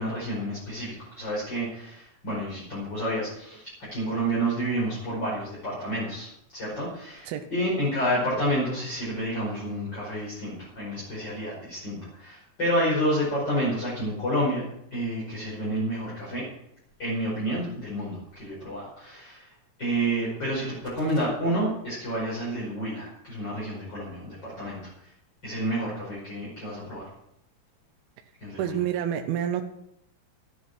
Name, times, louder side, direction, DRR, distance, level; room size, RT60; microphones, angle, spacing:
voice 1, 0.0-14.7 14.9-16.5 17.0-19.5 19.8-25.1 25.4-27.1 28.4-28.7, equal, 25° left, -7 dB, 5.7 m, -29 dB
voice 2, 28.6-29.6, right 10 dB, 75° right, 5 dB, 2.7 m, -28 dB
13.0 x 11.0 x 6.1 m, 0.76 s
omnidirectional pair, 4.6 m